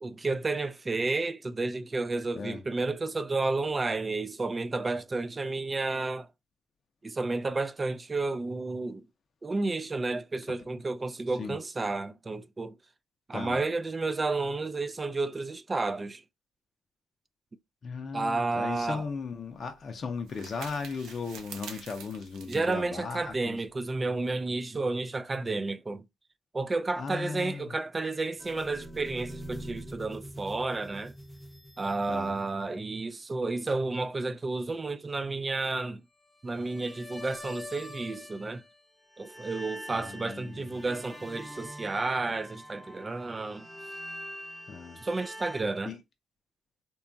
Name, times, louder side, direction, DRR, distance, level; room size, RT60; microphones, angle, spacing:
voice 1, 0.0-6.3 7.0-9.0 9.4-12.7 13.3-16.2 18.1-19.0 22.5-26.0 26.5-31.1 31.8-36.0 36.4-38.6 39.2-43.7 45.0-45.9, right 3 dB, 25° right, 0.3 m, -31 dB
voice 2, 17.8-23.6 26.9-27.8 32.1-32.4 39.9-40.8 44.7-45.0 45.9-46.0, left 5 dB, 45° left, 0.5 m, -37 dB
sound 1, 18.8-24.0, right 7 dB, 85° right, 0.6 m, -48 dB
sound 2, 28.4-32.6 36.4-38.8 39.1-45.6, equal, ahead, 0.7 m, -45 dB
2.8 x 2.3 x 2.6 m
cardioid pair, 90°, 0 cm